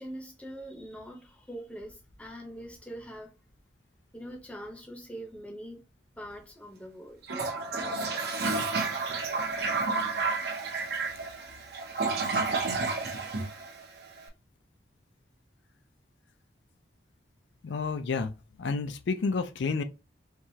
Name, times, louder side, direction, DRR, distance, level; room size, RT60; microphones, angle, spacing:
voice 1, 0.0-3.4 4.1-5.8 6.2-7.2, right 1 dB, 5° left, 0.7 m, -43 dB
Toilet flush, 7.2-14.2, right 3 dB, 55° right, 0.7 m, -30 dB
voice 2, 17.6-18.3 18.6-19.8, left 4 dB, 75° left, 0.4 m, -30 dB
4.6 x 2.3 x 2.7 m
head